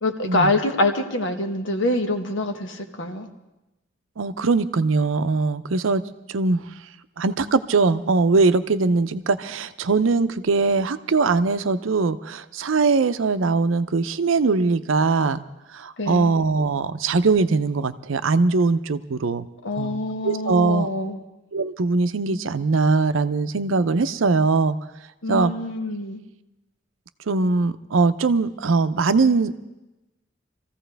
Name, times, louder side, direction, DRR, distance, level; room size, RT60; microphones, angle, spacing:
voice 1, 0.0-3.3 16.0-16.3 19.6-21.2 25.2-26.2, left 2 dB, 75° left, 6 dB, 1.2 m, -25 dB
voice 2, 4.2-6.0 6.3-6.7 7.2-15.4 15.7-19.5 19.8-20.9 21.5-24.8 25.3-25.5 27.3-29.6, right 4 dB, 85° right, 13 dB, 0.6 m, -21 dB
24.0 x 15.0 x 3.4 m, 1.0 s
head